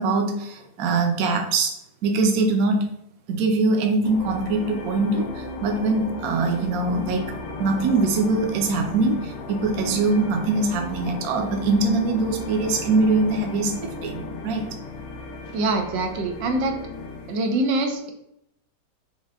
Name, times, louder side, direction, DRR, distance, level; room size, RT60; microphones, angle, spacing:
voice 1, 0.0-1.7 2.0-2.9 3.3-5.3 5.6-7.3 7.6-13.7 14.0-14.7, right 3 dB, 65° right, 3 dB, 1.1 m, -22 dB
sound 1, 4.0-17.4, left 2 dB, 85° left, 1.3 m, -35 dB
voice 2, 15.5-16.8 17.3-18.1, right 2 dB, 90° right, 4 dB, 1.4 m, -24 dB
6.2 x 2.2 x 3.5 m, 0.78 s
omnidirectional pair, 1.9 m